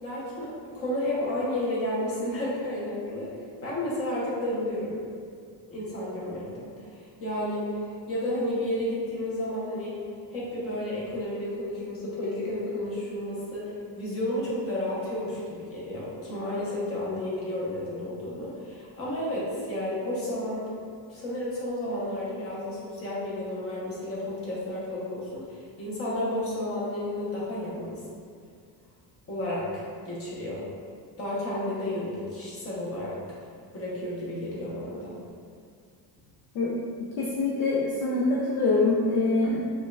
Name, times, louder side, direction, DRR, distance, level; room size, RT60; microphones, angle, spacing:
voice 1, 0.0-3.3 3.6-5.0 5.7-10.0 10.3-20.7 21.1-28.0 29.3-30.7 31.2-35.2, left 1 dB, 30° left, -7 dB, 0.8 m, -32 dB
voice 2, 37.0-39.6, left 3 dB, 50° left, -5 dB, 0.5 m, -25 dB
5.1 x 2.5 x 2.2 m, 2.2 s
cardioid pair, 175°, 46 cm